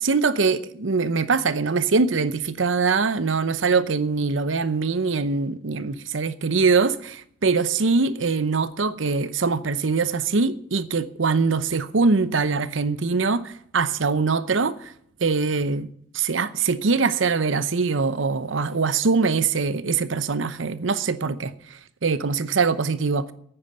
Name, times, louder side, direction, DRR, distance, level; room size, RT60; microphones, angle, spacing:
voice 1, 0.0-14.9 15.2-23.3, right 4 dB, 75° right, 0.8 m, -23 dB
9.7 x 8.9 x 9.4 m
head